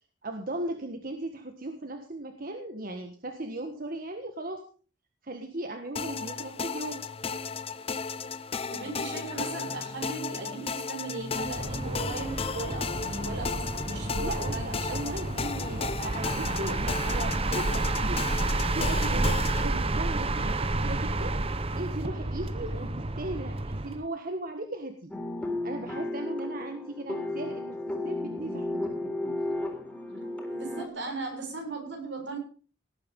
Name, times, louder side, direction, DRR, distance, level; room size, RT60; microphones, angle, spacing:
voice 1, 0.2-4.6 5.2-7.0 14.2-18.2 18.7-25.1 25.6-28.9 29.5-29.6, right 1 dB, 50° right, 5 dB, 1.5 m, -37 dB
sound 1, 6.0-19.7, left 5 dB, 30° left, 0.6 m, -35 dB
voice 2, 8.7-15.0 15.8-15.9 22.7-23.0 30.5-32.4, right 3 dB, 80° right, 2 dB, 7.0 m, -37 dB
sound 2, 11.4-24.1, right 2 dB, 30° right, 0.9 m, -30 dB
sound 3, 25.1-30.9, left 1 dB, 5° left, 3.7 m, -33 dB
18.5 x 9.5 x 5.3 m, 0.40 s
head